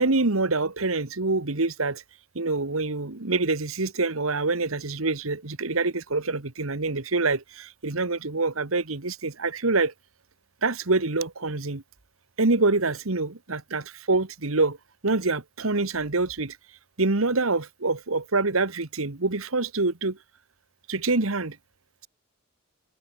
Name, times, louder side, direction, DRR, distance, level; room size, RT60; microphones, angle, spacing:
voice 1, 0.0-2.0 2.3-9.9 10.6-11.8 12.4-14.8 15.0-16.6 17.0-20.2 20.9-21.6, right 3 dB, 75° right, 1.7 m, -26 dB
head